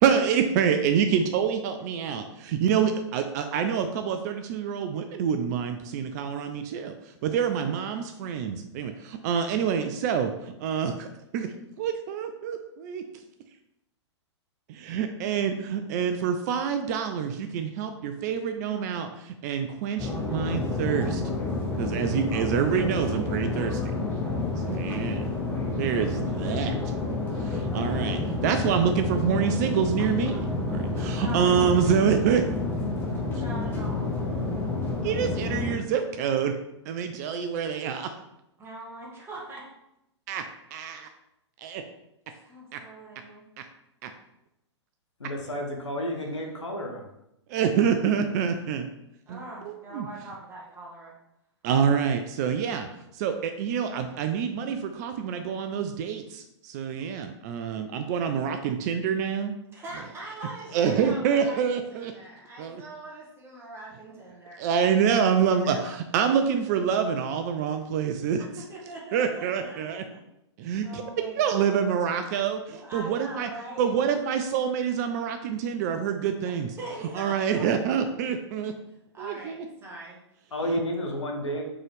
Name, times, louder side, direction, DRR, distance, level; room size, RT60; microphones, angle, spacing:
voice 1, 0.0-6.9 7.2-11.1 11.3-13.0 14.7-21.2 21.8-23.9 24.6-25.3 25.8-26.8 27.4-32.5 35.0-36.5 36.9-38.1 40.3-40.4 40.7-41.1 41.6-41.8 42.7-42.8 44.0-44.1 47.5-48.9 49.3-50.1 51.6-52.9 53.1-59.5 60.7-62.1 62.6-62.8 64.6-68.4 69.1-70.0 70.6-71.0 71.4-73.5 73.8-76.7 77.1-78.7 79.2-79.7, right 7 dB, 35° right, 8 dB, 0.4 m, -26 dB
sound 1, 20.0-35.7, left 3 dB, 15° left, 1.0 m, -29 dB
voice 2, 30.0-30.7 31.1-31.7 33.4-34.1 38.6-39.7 42.3-43.5 47.7-48.0 49.3-51.2 59.7-61.6 61.9-65.9 68.7-70.2 70.8-71.9 72.7-73.9 76.8-78.0 79.1-80.2, right 2 dB, 15° right, -3 dB, 1.3 m, -42 dB
voice 3, 45.2-47.0 80.5-81.6, equal, 80° left, 1 dB, 1.1 m, -31 dB
3.8 x 3.8 x 3.2 m, 0.84 s
figure-of-eight pair, 110°, 15 cm